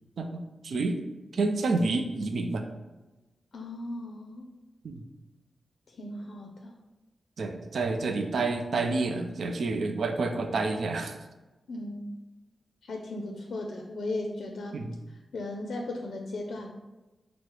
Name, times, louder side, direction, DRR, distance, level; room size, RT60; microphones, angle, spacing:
voice 1, 0.2-1.0 1.3-2.6 4.8-5.0 7.4-11.1 14.7-15.0, right 3 dB, 75° right, 5 dB, 0.4 m, -29 dB
voice 2, 3.5-4.5 5.9-6.7 11.7-12.2 12.8-14.8 15.1-16.7, left 2 dB, 80° left, 2 dB, 0.4 m, -37 dB
4.6 x 2.0 x 4.6 m, 1.1 s
wide cardioid pair, 140°, 0 cm